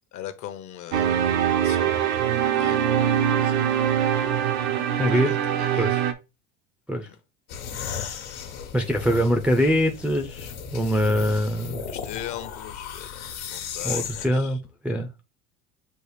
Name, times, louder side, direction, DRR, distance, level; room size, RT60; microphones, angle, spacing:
voice 1, 0.1-1.1 1.5-2.8 3.3-3.8 5.1-6.0 7.1-7.2 11.9-14.6, left 11 dB, 50° left, 0.8 m, -40 dB
sound 1, 0.9-6.1, right 10 dB, 85° right, 0.7 m, -23 dB
voice 2, 5.0-5.3 5.8-6.0 6.9-7.1 8.7-11.8 13.8-14.6 14.8-15.1, equal, 5° right, 0.4 m, -23 dB
sound 2, 7.5-14.3, left 7 dB, 80° left, 1.3 m, -35 dB
6.3 x 2.4 x 3.3 m
supercardioid pair, 105°, 39 cm